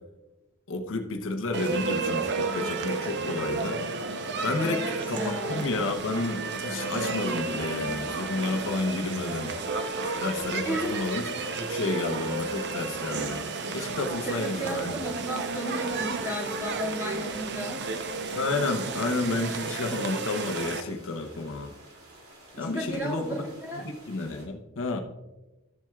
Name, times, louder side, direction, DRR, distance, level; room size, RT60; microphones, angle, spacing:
voice 1, 0.7-3.8 4.4-9.5 10.2-13.5 13.7-14.9 18.3-21.7 22.6-23.5 23.8-25.0, left 2 dB, 65° left, 4 dB, 0.9 m, -31 dB
sound 1, 1.5-20.8, right 4 dB, 55° right, 0.7 m, -32 dB
voice 2, 4.6-5.6 10.6-11.1 11.4-11.6 14.2-17.8 22.5-23.9, equal, 10° right, -4 dB, 2.2 m, -34 dB
sound 2, 5.1-24.5, right 1 dB, 80° right, 2.6 m, -52 dB
13.0 x 7.6 x 2.4 m, 1.0 s
head